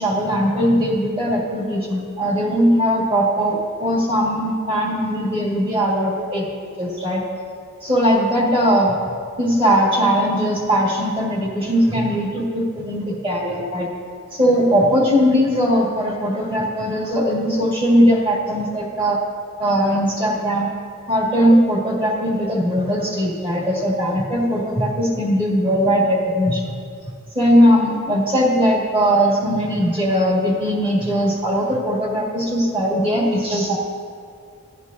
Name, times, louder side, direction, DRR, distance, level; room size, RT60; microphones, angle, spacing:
voice 1, 0.0-6.5 6.8-7.2 7.8-8.9 9.4-13.9 14.3-19.2 19.6-20.7 21.1-26.7 27.4-33.8, equal, 25° right, -3 dB, 1.9 m, -19 dB
14.5 x 9.8 x 2.7 m, 2.3 s
head